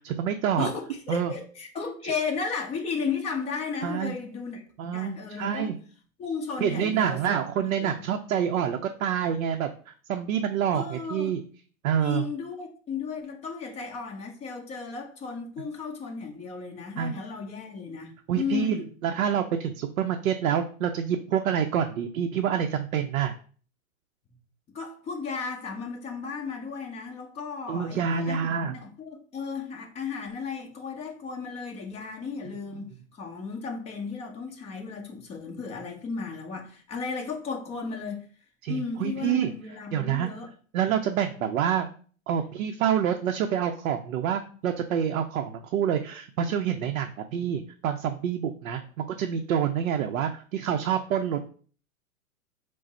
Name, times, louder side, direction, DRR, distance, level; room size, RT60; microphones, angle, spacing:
voice 1, 0.0-0.7 1.1-1.3 3.8-4.2 4.8-5.8 6.6-9.7 10.1-11.4 11.8-12.2 17.0-17.2 18.3-23.3 27.7-28.7 38.6-39.5 39.9-40.3 40.7-41.9 42.3-51.5, right 8 dB, 70° right, 0.5 m, -27 dB
voice 2, 0.6-4.6 4.9-5.7 6.2-7.2 7.6-7.9 10.7-11.4 12.0-18.9 24.7-38.2 38.7-40.5, left 5 dB, 15° left, 0.7 m, -34 dB
4.9 x 2.0 x 4.1 m
hypercardioid pair, 125°, 42 cm